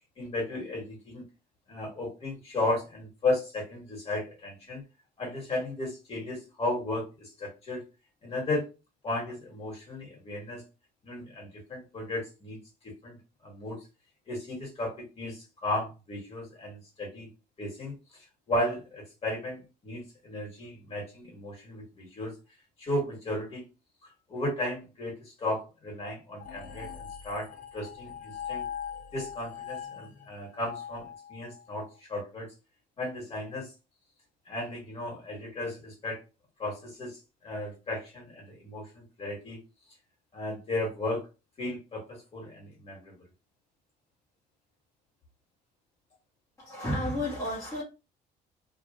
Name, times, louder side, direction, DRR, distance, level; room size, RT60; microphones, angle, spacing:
voice 1, 0.2-1.2 1.7-4.8 5.2-7.8 8.2-8.7 9.0-10.6 11.0-12.6 12.8-13.8 14.3-17.3 17.6-18.0 18.5-22.3 22.8-23.6 24.3-27.5 27.7-28.7 29.1-32.5 33.0-33.7 34.4-36.2 36.6-39.6 40.3-41.3 41.6-43.1, left 1 dB, 35° left, -1 dB, 1.7 m, -35 dB
sound 1, 26.4-31.8, left 8 dB, 55° left, 0.7 m, -41 dB
voice 2, 46.6-47.8, left 1 dB, 20° left, -6 dB, 1.1 m, -31 dB
3.1 x 2.4 x 2.6 m, 0.28 s
cardioid pair, 110°, 17 cm